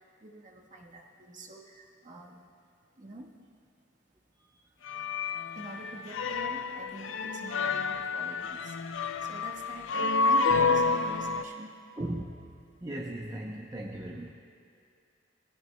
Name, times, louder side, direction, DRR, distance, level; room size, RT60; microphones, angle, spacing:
voice 1, 0.2-2.4 3.0-3.3 5.5-8.8 9.2-11.7, right 1 dB, 45° right, 0 dB, 1.3 m, -45 dB
sound 1, 4.9-11.4, left 4 dB, 85° left, 0.5 m, -29 dB
voice 2, 12.0-12.3 12.8-14.3, right 1 dB, 20° right, -1 dB, 0.7 m, -37 dB
20.0 x 17.0 x 2.2 m, 2.5 s
head